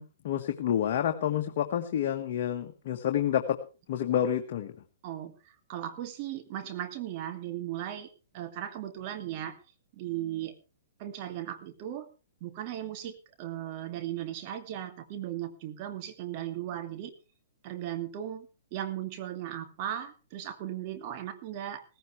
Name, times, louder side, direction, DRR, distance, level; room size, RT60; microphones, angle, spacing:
voice 1, 0.0-3.6 3.9-4.7, left 10 dB, 55° left, 3 dB, 1.7 m, -29 dB
voice 2, 5.0-8.1 8.3-9.6 9.9-10.5 11.0-12.1 12.4-17.1 17.6-21.8, right 12 dB, 45° right, 7 dB, 2.4 m, -37 dB
17.0 x 15.5 x 3.4 m, 0.34 s
hypercardioid pair, 130°, 0 cm